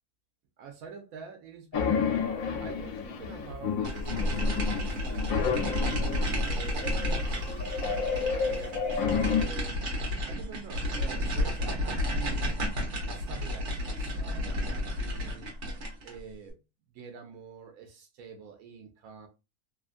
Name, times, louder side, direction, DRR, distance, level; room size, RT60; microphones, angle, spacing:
voice 1, 0.6-2.2 2.6-9.7 10.2-12.6 13.0-15.5 16.0-16.6 16.9-19.3, right 6 dB, 90° right, 1.1 m, -46 dB
sound 1, 1.7-9.5, left 6 dB, 75° left, 1.1 m, -31 dB
sound 2, 3.8-16.2, left 1 dB, 60° right, 1.2 m, -31 dB
2.8 x 2.4 x 2.4 m
omnidirectional pair, 1.4 m